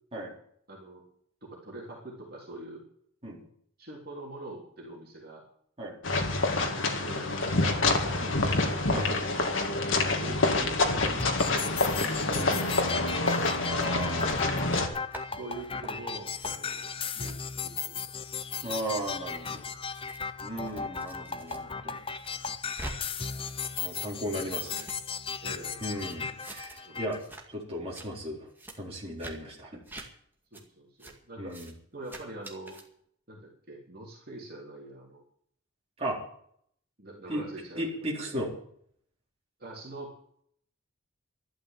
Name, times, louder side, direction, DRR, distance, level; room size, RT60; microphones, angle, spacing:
voice 1, 0.7-1.1 1.4-2.9 3.8-5.4 6.1-6.4 6.9-9.6 10.2-13.4 15.3-18.0 18.6-18.8 25.4-25.9 26.8-27.0 30.5-31.6 31.9-32.8 33.3-35.2 37.0-37.9 39.6-40.2, right 2 dB, 45° right, -3 dB, 3.5 m, -44 dB
sound 1, 6.0-14.9, left 2 dB, 65° left, 2.1 m, -27 dB
sound 2, 11.2-27.2, left 5 dB, 25° left, 0.7 m, -36 dB
voice 2, 13.7-14.4 14.8-14.9 18.6-19.6 20.4-22.0 23.8-24.9 25.8-27.2 27.5-28.5 28.8-29.8 31.4-31.7 36.0-36.2 37.3-37.4 37.8-38.5, equal, 30° right, -3 dB, 4.2 m, -36 dB
sound 3, 14.2-14.8 15.1-15.2 15.6-15.9 16.4-16.5 17.1-17.3 18.0-21.6 21.9-22.9 23.2-25.6 26.0-26.8 27.1-27.4 27.7-28.1 28.5-28.7 29.2-29.3 29.8-30.1 30.5-30.6 31.0-31.1 31.5-31.7 32.0-32.8, right 2 dB, 10° right, 2.2 m, -46 dB
12.5 x 12.0 x 7.5 m, 0.65 s
head